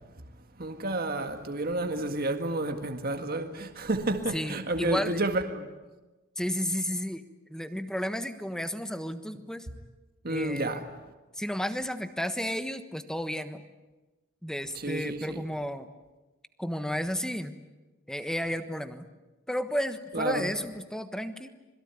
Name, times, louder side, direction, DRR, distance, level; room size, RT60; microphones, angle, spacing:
voice 1, 0.6-5.7 10.2-10.8 14.8-15.4 20.1-20.5, right 2 dB, 45° right, 1.8 m, -30 dB
voice 2, 4.3-5.2 6.4-7.2 7.5-9.7 10.3-10.8 11.3-13.6 14.4-15.9 16.6-17.5 18.1-19.1 19.5-21.5, equal, 5° left, 1.3 m, -32 dB
26.5 x 22.0 x 9.6 m
head